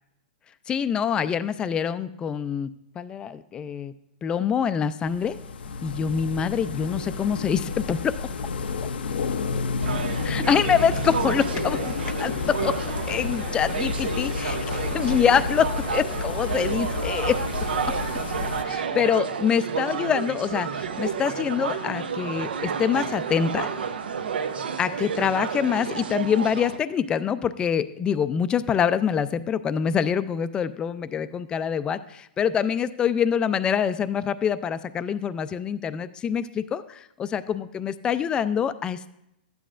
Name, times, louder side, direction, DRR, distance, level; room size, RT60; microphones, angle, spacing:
voice 1, 0.7-2.7 3.0-3.9 4.2-5.4 5.8-8.1 10.2-11.9 12.2-12.8 13.1-17.4 18.6-23.7 24.8-39.1, left 7 dB, 15° left, 14 dB, 0.4 m, -25 dB
sound 1, 5.0-18.6, left 4 dB, 80° left, 0.6 m, -30 dB
sound 2, 9.8-26.8, right 6 dB, 80° right, 0.7 m, -31 dB
12.5 x 9.2 x 2.5 m, 0.81 s
hypercardioid pair, 140°, 5 cm